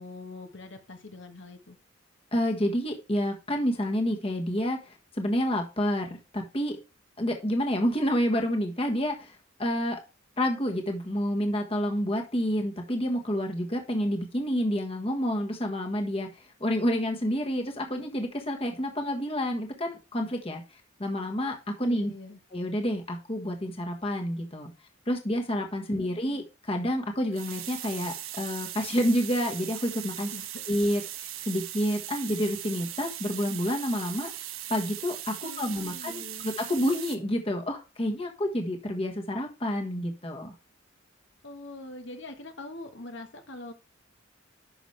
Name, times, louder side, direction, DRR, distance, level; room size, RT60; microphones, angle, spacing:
voice 1, 0.0-1.8 17.9-18.3 21.8-22.4 25.9-26.4 30.3-30.5 35.4-36.5 41.4-43.7, left 2 dB, 60° left, 5 dB, 1.5 m, -43 dB
voice 2, 2.3-6.8 7.2-10.0 10.4-16.3 16.6-20.6 21.0-22.1 22.5-24.7 25.1-30.3 30.7-31.0 31.4-34.3 34.7-40.5, equal, 30° left, 3 dB, 1.5 m, -29 dB
sound 1, 27.3-37.2, right 12 dB, 90° right, 1.2 m, -39 dB
11.0 x 6.1 x 3.3 m, 0.29 s
head